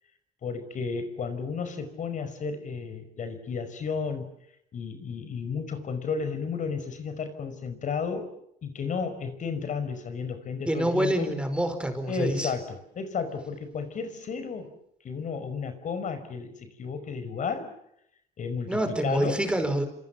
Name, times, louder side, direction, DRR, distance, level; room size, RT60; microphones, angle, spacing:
voice 1, 0.4-4.3 4.7-8.3 8.6-11.3 12.1-14.7 15.0-17.7 18.4-19.4, left 5 dB, 50° left, 10 dB, 5.4 m, -33 dB
voice 2, 10.7-12.5 18.7-19.9, right 1 dB, 5° right, 8 dB, 4.7 m, -27 dB
28.0 x 27.0 x 7.2 m, 0.73 s
cardioid pair, 110°, 17 cm